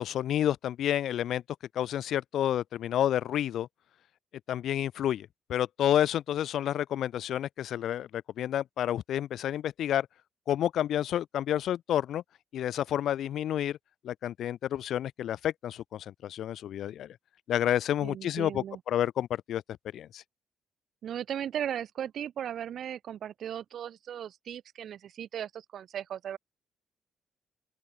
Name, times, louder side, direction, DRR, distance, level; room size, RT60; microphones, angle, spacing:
voice 1, 0.0-1.4 1.7-3.7 4.5-10.1 10.5-12.2 12.5-13.8 14.0-17.2 17.5-19.6 19.9-20.2, left 11 dB, 70° left, 0.6 m, -30 dB
voice 2, 18.0-18.8 21.0-26.4, right 9 dB, 65° right, 1.6 m, -37 dB
open air
cardioid pair, 90°, 0 cm